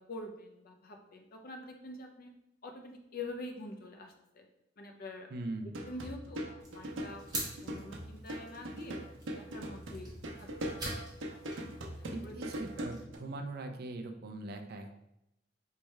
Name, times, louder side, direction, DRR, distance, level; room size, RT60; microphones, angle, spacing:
voice 1, 0.0-2.3 2.6-4.5 4.8-5.3 5.6-6.4 6.7-7.3 7.6-9.0 9.3-10.1 10.4-10.8 11.9-12.3, left 2 dB, 50° left, 3 dB, 0.6 m, -46 dB
voice 2, 5.3-5.8 12.1-15.0, right 2 dB, 55° right, 5 dB, 0.5 m, -41 dB
sound 1, 5.7-13.2, right 1 dB, 85° right, 0.8 m, -41 dB
sound 2, 6.6-13.0, right 2 dB, 20° right, 1.4 m, -46 dB
3.3 x 3.3 x 4.4 m, 0.84 s
head